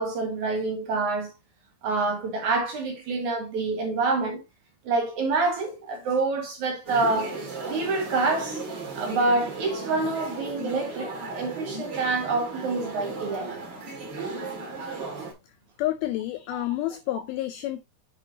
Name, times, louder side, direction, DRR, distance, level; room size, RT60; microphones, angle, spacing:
voice 1, 0.0-1.3 1.8-4.4 4.8-7.4 7.7-8.6 9.0-13.5 16.5-16.6, right 3 dB, 60° right, 2.4 m, -27 dB
sound 1, 6.9-15.3, right 3 dB, 40° right, 1.8 m, -35 dB
voice 2, 15.8-17.8, left 15 dB, 85° left, 2.1 m, -29 dB
8.3 x 5.6 x 2.6 m
omnidirectional pair, 4.8 m